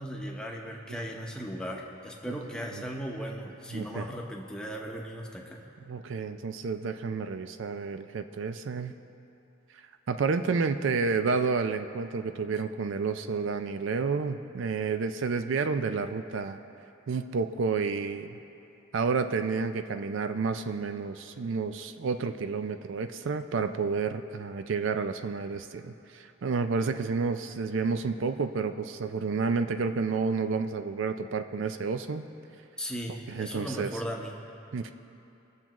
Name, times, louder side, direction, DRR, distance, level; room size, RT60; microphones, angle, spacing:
voice 1, 0.0-5.6 32.8-34.3, equal, 5° left, -1 dB, 0.9 m, -37 dB
voice 2, 3.7-4.1 5.9-8.9 10.1-16.6 17.1-18.4 18.9-32.3 33.3-33.9 34.7-34.9, right 4 dB, 65° right, 9 dB, 0.4 m, -30 dB
21.0 x 7.2 x 3.0 m, 2.8 s
head